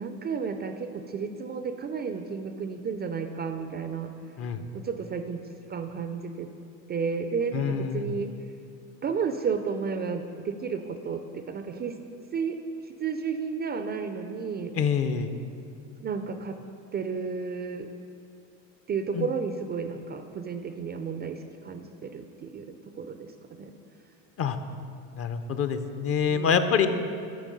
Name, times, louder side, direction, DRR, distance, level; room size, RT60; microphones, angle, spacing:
voice 1, 0.0-4.1 4.7-5.4 5.7-6.5 6.9-8.3 9.0-12.0 12.3-14.7 16.0-16.6 16.9-17.9 18.9-23.3 23.6-23.7 26.3-27.1, right 5 dB, 25° right, 7 dB, 0.4 m, -32 dB
voice 2, 7.5-8.1 14.7-15.3 19.1-19.3 24.4-24.6 25.1-26.9, left 7 dB, 35° left, 9 dB, 0.5 m, -26 dB
9.2 x 4.5 x 5.3 m, 2.5 s
supercardioid pair, 90°, 39 cm